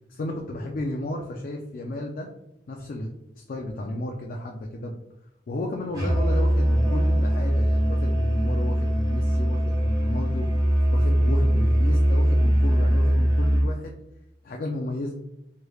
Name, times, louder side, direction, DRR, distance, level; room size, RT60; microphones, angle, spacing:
voice 1, 0.1-2.3 2.7-3.1 3.4-5.0 5.5-10.5 10.9-14.0 14.4-15.1, left 1 dB, 55° left, 1 dB, 0.4 m, -33 dB
Musical instrument, 5.9-13.7, equal, 25° right, 1.1 m, -21 dB
3.2 x 3.2 x 2.3 m, 0.87 s
head